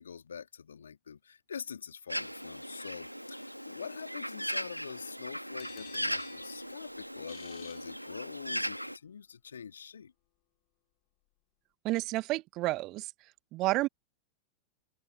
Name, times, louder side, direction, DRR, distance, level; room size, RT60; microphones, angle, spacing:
voice 1, 0.0-10.1, left 7 dB, 70° left, 2.7 m, -45 dB
Bird, 2.1-9.0, equal, 90° right, 1.5 m, -38 dB
sound 1, 5.6-8.6, left 28 dB, 45° left, 5.7 m, -54 dB
voice 2, 11.8-13.1 13.5-13.9, right 19 dB, 40° right, 1.4 m, -30 dB
figure-of-eight pair, 90°, 0 cm